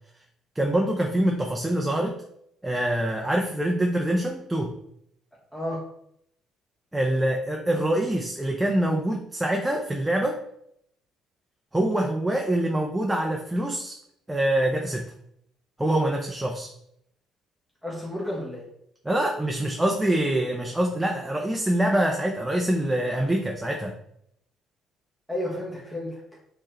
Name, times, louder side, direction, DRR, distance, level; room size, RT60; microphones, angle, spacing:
voice 1, 0.6-2.2 2.6-4.8 6.9-10.4 11.7-14.0 14.3-15.1 15.8-16.7 19.0-24.0, right 1 dB, 10° right, 1 dB, 0.6 m, -25 dB
voice 2, 5.5-5.8 17.8-18.7 25.3-26.2, left 1 dB, 10° left, -4 dB, 1.2 m, -31 dB
4.5 x 3.1 x 2.9 m, 0.73 s
hypercardioid pair, 60°, 0 cm